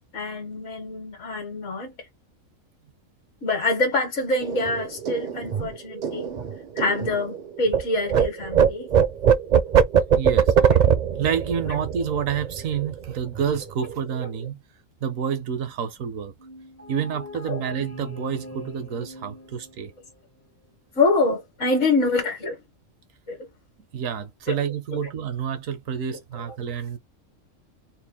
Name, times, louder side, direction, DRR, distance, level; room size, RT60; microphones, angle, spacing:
voice 1, 0.1-1.9 3.4-6.3 6.7-8.9 11.6-11.8 13.6-13.7 17.5-17.6 20.9-22.6 23.3-23.5 24.5-24.6 24.9-25.0 26.1-26.6, left 3 dB, 65° left, 1.5 m, -25 dB
sound 1, 4.4-7.8 8.1-13.1 13.3-13.6 13.9-14.4, right 8 dB, 50° right, 0.5 m, -21 dB
voice 2, 10.2-10.7 11.2-14.6 15.0-16.3 16.9-19.9 23.9-27.0, right 7 dB, 80° right, 1.1 m, -28 dB
sound 2, 16.4-20.2, equal, 15° left, 0.5 m, -41 dB
4.4 x 2.2 x 3.6 m
omnidirectional pair, 1.4 m